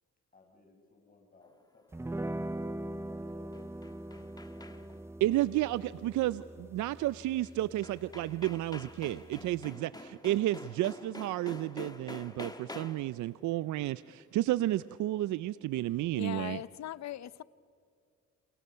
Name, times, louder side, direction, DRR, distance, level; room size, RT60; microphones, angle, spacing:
voice 1, 0.3-5.2 9.6-9.9 16.5-16.6, left 3 dB, 30° left, 5.3 m, -60 dB
sound 1, 1.9-9.7, right 1 dB, 10° right, 0.6 m, -42 dB
sound 2, 3.3-5.1 7.4-7.5 7.8-13.2, left 2 dB, 15° left, 1.5 m, -47 dB
voice 2, 5.2-9.9 10.2-16.6, right 15 dB, 75° right, 0.5 m, -31 dB
voice 3, 16.2-17.4, left 12 dB, 65° left, 0.7 m, -39 dB
29.0 x 27.5 x 5.7 m
cardioid pair, 90°, 30 cm